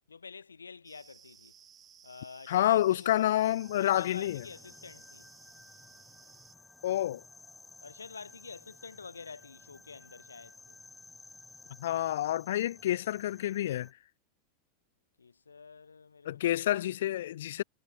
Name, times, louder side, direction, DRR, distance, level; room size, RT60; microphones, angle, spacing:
voice 1, 0.1-1.5 2.0-3.4 3.8-5.2 7.8-10.8 15.2-16.5, left 5 dB, 85° left, 3.4 m, -48 dB
sound 1, 0.8-6.5, right 8 dB, 30° right, 2.8 m, -58 dB
voice 2, 2.5-4.4 6.8-7.2 11.8-13.9 16.3-17.6, left 13 dB, 65° left, 0.3 m, -28 dB
sound 2, 3.4-13.9, left 3 dB, 10° left, 2.0 m, -55 dB
figure-of-eight pair, 85°, 0 cm